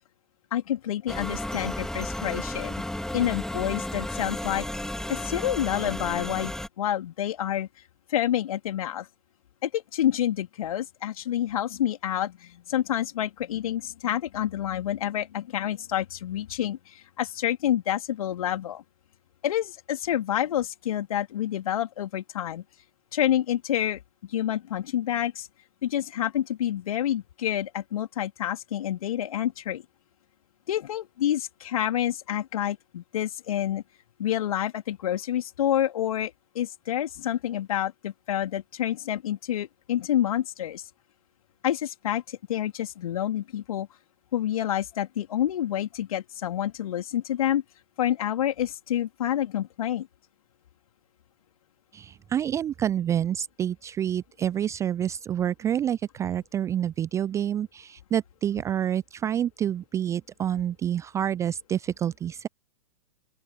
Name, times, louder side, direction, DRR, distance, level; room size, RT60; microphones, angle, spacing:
voice 1, 0.5-2.7 3.1-4.7 5.1-7.7 8.1-9.1 9.6-18.8 19.4-22.6 23.1-24.0 24.3-25.5 25.8-29.8 30.7-33.8 34.2-40.9 41.6-43.9 44.3-47.6 48.0-50.1, left 11 dB, 60° left, 3.7 m, -28 dB
sound 1, 1.1-6.7, left 1 dB, 5° left, 3.7 m, -33 dB
voice 2, 51.9-62.5, right 10 dB, 15° right, 0.4 m, -28 dB
open air
figure-of-eight pair, 105°, 20 cm